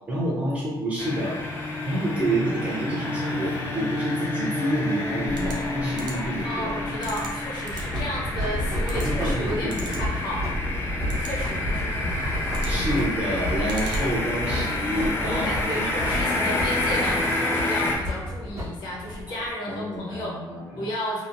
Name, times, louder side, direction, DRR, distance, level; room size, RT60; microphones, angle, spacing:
voice 1, 0.1-1.4 1.8-6.7 9.0-9.9 12.6-15.8 19.3-19.4 19.7-20.9, right 1 dB, 15° right, -7 dB, 0.6 m, -28 dB
sound 1, 1.0-18.0, left 2 dB, 30° left, 0.4 m, -29 dB
sound 2, 5.2-14.4, right 1 dB, 60° right, 0.5 m, -40 dB
voice 2, 6.4-10.6 11.2-12.4 12.7-12.8 15.2-20.3 20.8-21.3, left 1 dB, 65° left, -3 dB, 0.8 m, -33 dB
sound 3, 7.7-19.5, equal, 40° right, 0.9 m, -31 dB
2.9 x 2.1 x 2.5 m, 1.2 s
cardioid pair, 170°, 8 cm